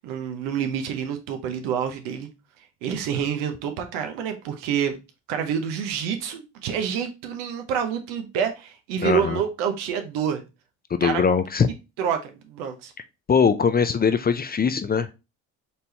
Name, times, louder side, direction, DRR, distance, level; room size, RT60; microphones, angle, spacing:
voice 1, 0.0-2.3 2.8-5.0 5.3-10.4 11.0-11.2 12.0-12.9, right 8 dB, 85° right, 0.9 m, -27 dB
voice 2, 9.0-9.4 10.9-11.7 13.3-15.1, left 6 dB, 25° left, 0.4 m, -21 dB
4.3 x 3.4 x 2.8 m
supercardioid pair, 65°, 40 cm